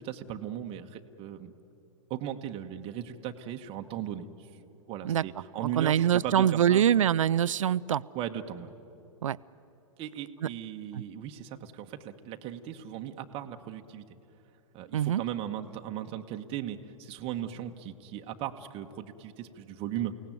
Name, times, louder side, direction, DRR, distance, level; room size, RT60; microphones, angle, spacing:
voice 1, 0.0-1.5 2.1-4.5 4.9-6.8 8.1-8.7 10.0-14.0 14.7-20.1, right 10 dB, 35° right, 5 dB, 1.3 m, -37 dB
voice 2, 5.8-8.0 9.2-9.4 10.4-10.5 14.9-15.2, right 10 dB, 70° right, 19 dB, 0.5 m, -24 dB
30.0 x 17.5 x 9.3 m, 3.0 s
figure-of-eight pair, 105°, 17 cm